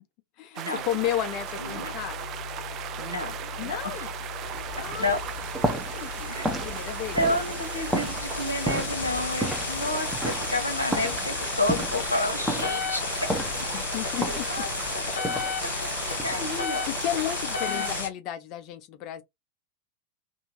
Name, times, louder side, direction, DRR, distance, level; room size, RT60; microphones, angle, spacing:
voice 1, 0.4-2.2 3.6-4.1 4.8-5.2 5.6-7.3 13.7-14.6 16.9-19.2, left 12 dB, 40° left, 0.6 m, -33 dB
sound 1, 0.6-18.0, right 9 dB, 35° right, 0.4 m, -37 dB
sound 2, 1.2-18.1, left 5 dB, 65° left, 1.1 m, -34 dB
voice 2, 1.6-2.0 3.0-4.1 5.0-5.2 6.3-6.6 7.1-13.3 14.5-14.7 15.6-16.9 17.6-17.9, left 1 dB, 80° left, 0.8 m, -30 dB
sound 3, 4.5-16.7, right 1 dB, 5° right, 0.7 m, -34 dB
2.6 x 2.6 x 3.0 m
figure-of-eight pair, 90°, 0 cm